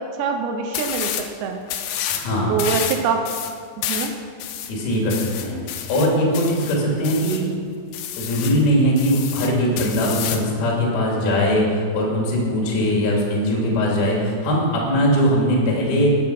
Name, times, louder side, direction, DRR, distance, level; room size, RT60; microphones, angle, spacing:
voice 1, 0.0-1.6 2.5-3.3 3.9-4.1, right 6 dB, 75° right, 4 dB, 2.8 m, -24 dB
sound 1, 0.7-1.3 1.7-2.3 2.6-7.5 7.9-8.6 9.0-10.5, left 10 dB, 80° left, 2.4 m, -29 dB
voice 2, 2.1-2.5 4.7-7.5 8.2-16.1, equal, 55° left, -3 dB, 4.1 m, -20 dB
14.5 x 9.1 x 5.9 m, 2.1 s
omnidirectional pair, 5.5 m